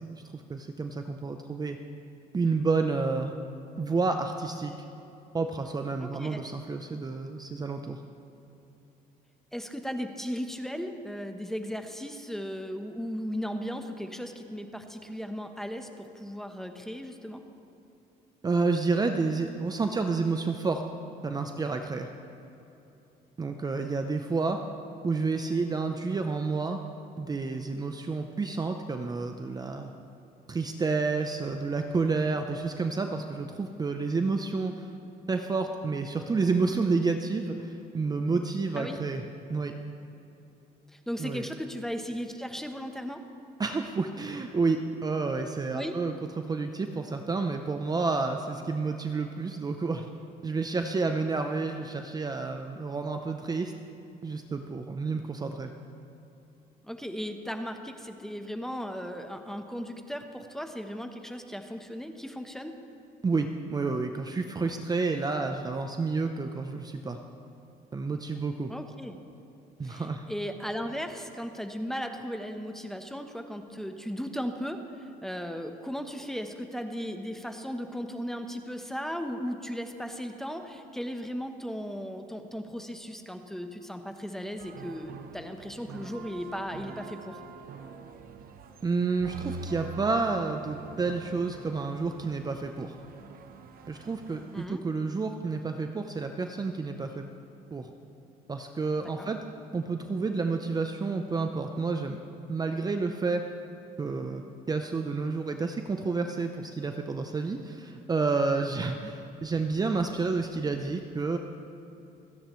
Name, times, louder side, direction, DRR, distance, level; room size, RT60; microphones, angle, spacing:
voice 1, 0.0-1.8 2.3-3.3 3.8-4.7 5.3-8.0 18.4-20.8 21.2-22.1 23.4-24.6 25.0-26.8 27.2-29.9 30.5-34.9 35.3-39.2 39.5-39.7 41.2-41.5 43.6-50.1 50.4-53.7 54.2-55.7 63.2-67.2 67.9-68.7 69.8-70.2 88.8-92.9 93.9-97.3 97.7-97.9 98.5-99.4 99.7-102.2 102.5-103.4 104.0-111.4, right 4 dB, 25° right, 5 dB, 0.7 m, -30 dB
voice 2, 6.0-6.4 9.5-17.4 38.8-39.0 40.9-43.2 45.7-45.9 56.8-62.7 68.7-69.2 69.8-87.4 94.5-94.8 99.2-99.3, equal, ahead, 6 dB, 1.0 m, -36 dB
sound 1, 84.6-94.7, right 5 dB, 60° right, 0.9 m, -45 dB
27.5 x 10.0 x 3.2 m, 2.9 s
cardioid pair, 110°, 17 cm